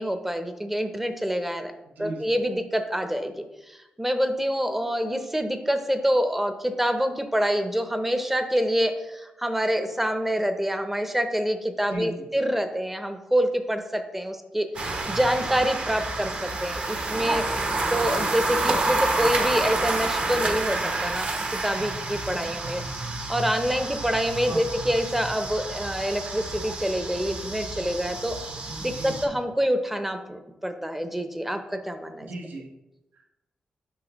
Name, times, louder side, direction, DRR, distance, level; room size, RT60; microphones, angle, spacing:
voice 1, 0.0-1.7 2.0-3.3 3.7-22.8 23.3-28.4 28.8-32.3, equal, 10° right, 8 dB, 0.6 m, -26 dB
voice 2, 2.0-2.3 11.9-12.1 18.1-18.3 24.5-24.6 28.9-29.3 32.3-32.7 33.1-33.2, right 2 dB, 85° right, 2 dB, 0.9 m, -36 dB
sound 1, 14.7-29.2, right 2 dB, 50° right, 1.0 m, -29 dB
7.3 x 5.6 x 3.0 m, 0.98 s
wide cardioid pair, 115°, 3 cm